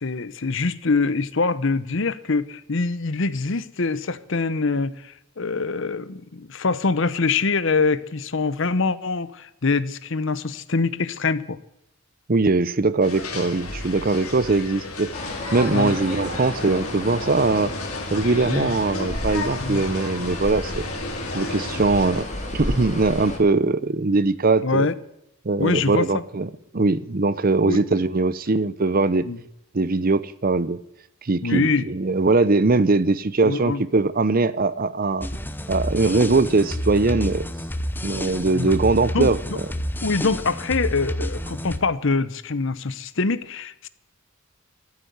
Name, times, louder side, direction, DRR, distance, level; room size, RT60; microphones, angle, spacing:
voice 1, 0.0-11.6 15.7-15.9 18.5-18.7 19.6-19.8 24.6-24.9 25.6-26.2 27.6-27.8 29.2-29.4 31.4-31.8 33.4-33.8 38.3-38.7 39.1-39.3 40.0-43.9, left 4 dB, 60° left, 0.8 m, -24 dB
voice 2, 12.3-15.1 15.5-17.7 18.1-20.8 21.3-22.3 22.5-24.9 25.4-29.3 29.7-30.8 31.2-35.3 35.7-37.4 38.0-39.4, right 3 dB, 40° right, 0.7 m, -21 dB
sound 1, 13.0-22.2, left 3 dB, 90° left, 2.9 m, -33 dB
sound 2, 15.1-23.4, left 1 dB, 35° left, 4.0 m, -32 dB
sound 3, 35.2-41.8, equal, 10° left, 0.8 m, -29 dB
14.5 x 8.2 x 9.5 m
head